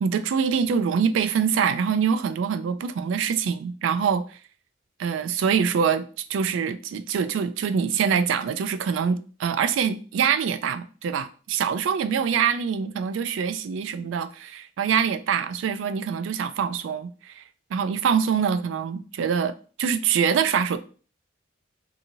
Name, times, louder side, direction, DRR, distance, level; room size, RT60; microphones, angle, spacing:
voice 1, 0.0-4.4 5.0-17.4 17.7-20.8, right 7 dB, 70° right, 0.3 m, -24 dB
2.8 x 2.7 x 2.6 m
head